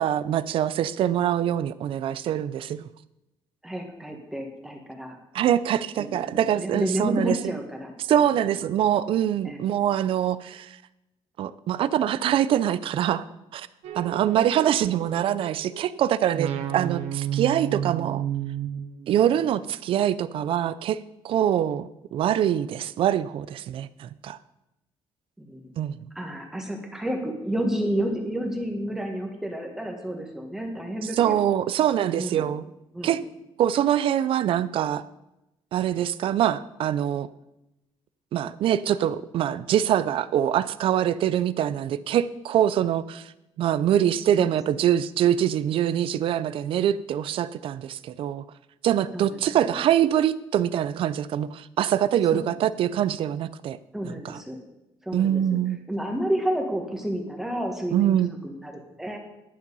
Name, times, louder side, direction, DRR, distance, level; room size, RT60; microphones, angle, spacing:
voice 1, 0.0-2.8 5.3-7.6 8.1-10.8 11.4-13.2 13.5-13.7 14.0-18.2 19.1-21.0 21.2-24.4 25.8-26.0 31.2-32.6 33.0-33.2 33.6-35.0 35.7-37.3 38.3-43.3 43.6-48.4 48.8-53.8 54.2-54.4 55.1-55.8 57.9-58.3, right 10 dB, 60° right, 16 dB, 0.5 m, -24 dB
voice 2, 3.6-5.2 6.0-7.9 8.7-8.8 9.4-9.7 25.4-25.7 26.1-31.4 32.1-32.5 32.9-33.2 44.4-44.9 49.1-49.8 52.3-52.5 53.9-54.6 55.0-55.4 55.9-59.2, right 1 dB, 5° right, 2 dB, 1.6 m, -31 dB
sound 1, 13.8-15.9 16.3-19.5, right 11 dB, 80° right, 0.9 m, -32 dB
11.0 x 7.4 x 5.5 m, 0.92 s
cardioid pair, 145°, 10 cm